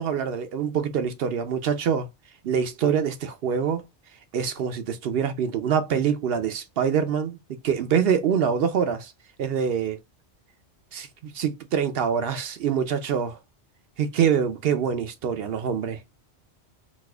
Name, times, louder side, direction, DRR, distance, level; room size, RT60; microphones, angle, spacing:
voice 1, 0.0-2.1 2.4-3.8 4.3-7.4 7.6-9.1 9.4-10.0 10.9-13.4 14.0-16.0, right 7 dB, 65° right, 0.7 m, -25 dB
4.1 x 2.4 x 2.3 m
omnidirectional pair, 1.2 m